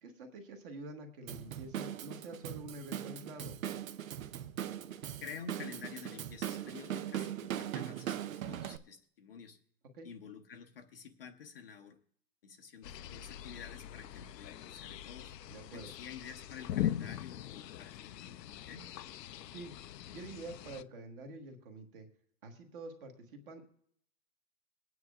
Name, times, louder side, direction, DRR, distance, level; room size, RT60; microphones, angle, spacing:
voice 1, 0.0-3.6 9.9-10.1 15.5-15.9 19.5-19.7 20.1-22.1 22.4-23.7, right 2 dB, 35° right, 4 dB, 1.5 m, -47 dB
Drum kit / Drum, 1.3-8.8, right 10 dB, 55° right, 0.7 m, -40 dB
voice 2, 5.2-9.6 10.0-12.0 12.4-15.3 15.7-18.9, left 6 dB, 35° left, 4 dB, 0.7 m, -50 dB
sound 1, 12.8-20.8, left 12 dB, 75° left, 0.7 m, -41 dB
21.5 x 9.4 x 2.4 m, 0.65 s
hypercardioid pair, 170°, 50 cm